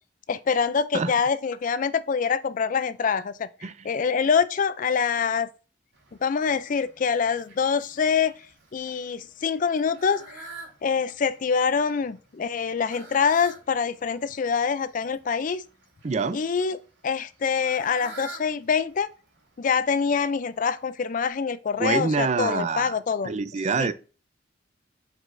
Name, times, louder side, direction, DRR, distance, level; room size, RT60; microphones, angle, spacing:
voice 1, 0.3-3.5 3.8-5.5 6.2-8.3 8.7-10.4 10.8-15.6 16.3-16.8 17.0-19.1 19.6-23.3 23.8-23.9, left 6 dB, 45° left, 0.4 m, -25 dB
Fowl, 5.9-21.3, right 3 dB, 65° right, 3.0 m, -49 dB
voice 2, 16.0-16.4 21.8-23.0 23.2-23.9, right 4 dB, 35° right, 0.4 m, -25 dB
7.4 x 5.0 x 2.6 m
head